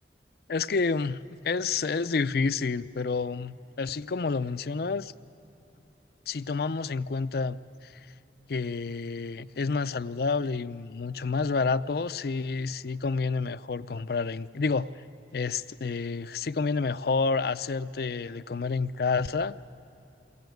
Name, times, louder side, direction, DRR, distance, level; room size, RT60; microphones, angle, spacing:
voice 1, 0.5-5.1 6.3-7.9 8.5-14.9 15.3-19.6, left 4 dB, 60° left, 13 dB, 0.5 m, -29 dB
23.0 x 17.5 x 9.2 m, 2.8 s
head